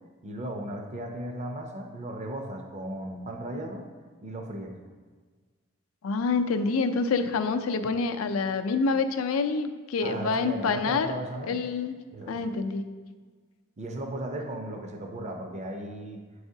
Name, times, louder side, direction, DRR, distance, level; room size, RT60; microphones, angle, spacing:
voice 1, 0.2-3.9 4.2-4.7 10.0-11.6 12.1-12.4 13.8-16.2, right 1 dB, 35° right, 3 dB, 0.5 m, -36 dB
voice 2, 6.0-11.1 11.5-11.9 12.3-12.8, left 4 dB, 90° left, 8 dB, 0.4 m, -27 dB
7.9 x 4.8 x 2.7 m, 1.5 s
head